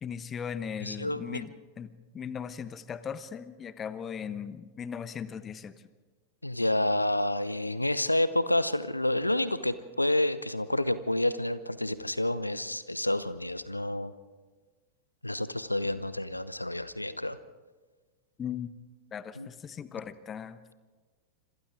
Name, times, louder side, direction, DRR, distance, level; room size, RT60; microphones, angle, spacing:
voice 1, 0.0-5.7 18.4-18.7 19.1-20.7, left 7 dB, 25° left, 14 dB, 1.1 m, -38 dB
voice 2, 0.8-1.4 6.4-14.1 15.2-17.4 19.4-19.5, left 1 dB, 85° left, 15 dB, 0.8 m, -29 dB
27.0 x 26.0 x 3.8 m, 1.4 s
figure-of-eight pair, 90°, 0 cm